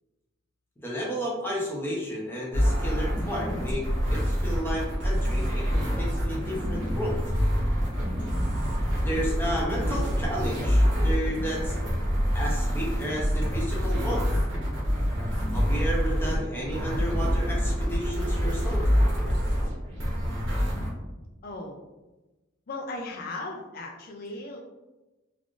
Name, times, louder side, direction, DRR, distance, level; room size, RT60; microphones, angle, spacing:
voice 1, 0.8-3.8 4.1-7.2 9.0-11.8 12.3-14.3 15.5-18.8, equal, 10° left, -4 dB, 0.7 m, -32 dB
sound 1, 2.5-20.9, equal, 80° right, 0.9 m, -26 dB
voice 2, 21.4-21.8 22.7-24.6, left 2 dB, 50° left, 0 dB, 0.4 m, -37 dB
3.3 x 2.4 x 2.4 m, 1.1 s
head